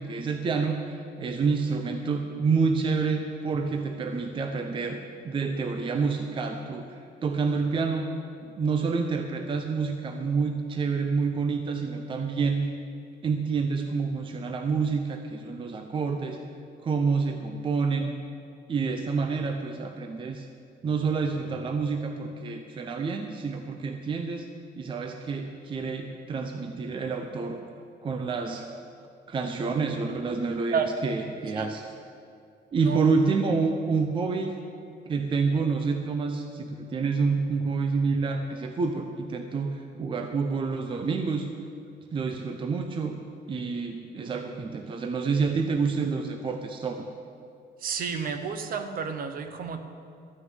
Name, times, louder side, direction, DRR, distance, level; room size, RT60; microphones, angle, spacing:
voice 1, 0.0-8.1 8.4-12.7 13.2-16.4 16.8-18.2 18.7-20.5 20.8-24.5 24.8-27.6 28.0-28.7 29.3-31.9 32.7-34.5 35.1-41.5 42.1-43.2 43.5-47.0, right 4 dB, 25° right, 5 dB, 0.7 m, -28 dB
voice 2, 47.8-49.8, right 6 dB, 50° right, 8 dB, 1.0 m, -30 dB
13.0 x 6.4 x 9.3 m, 2.3 s
cardioid pair, 165°, 19 cm